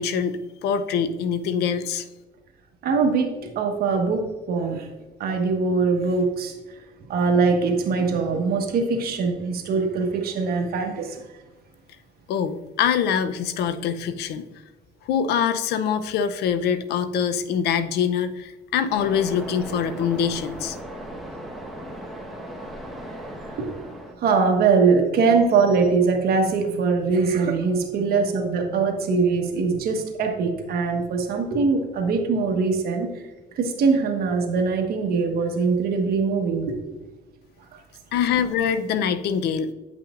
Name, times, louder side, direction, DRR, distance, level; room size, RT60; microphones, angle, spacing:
voice 1, 0.0-2.1 12.3-14.4 15.1-20.8 38.1-39.7, left 7 dB, 75° left, 11 dB, 0.6 m, -24 dB
voice 2, 2.8-4.9 5.2-6.5 7.1-11.2 23.4-23.7 24.2-33.1 33.5-36.8, right 4 dB, 65° right, 3 dB, 1.3 m, -22 dB
Waves surf, 18.9-24.1, right 1 dB, ahead, 1.1 m, -37 dB
9.3 x 5.8 x 2.5 m, 1.2 s
cardioid pair, 110°, 17 cm